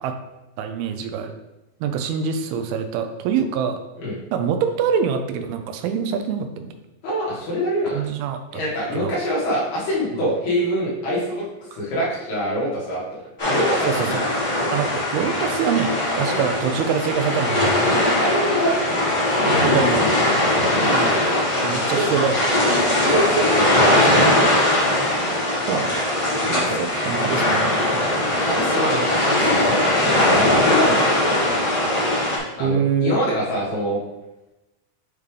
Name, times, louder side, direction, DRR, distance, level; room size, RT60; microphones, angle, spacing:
voice 1, 0.6-1.3 1.8-3.8 4.3-6.7 7.9-8.6 8.9-9.2 13.9-14.3 14.7-17.8 19.6-20.0 20.9-21.1 21.6-22.5 25.7-26.0 26.5-28.0 32.6-33.2, right 7 dB, 90° right, 7 dB, 2.5 m, -25 dB
voice 2, 7.0-8.1 8.5-11.5 11.7-13.0 13.4-14.2 14.5-14.8 16.3-16.4 18.1-20.1 21.7-22.1 22.9-24.7 26.7-26.8 28.4-31.2 32.6-34.0, equal, 80° left, -6 dB, 3.7 m, -25 dB
sound 1, 13.4-32.4, left 1 dB, 60° left, 0.7 m, -20 dB
8.0 x 3.6 x 3.3 m, 0.99 s
omnidirectional pair, 4.4 m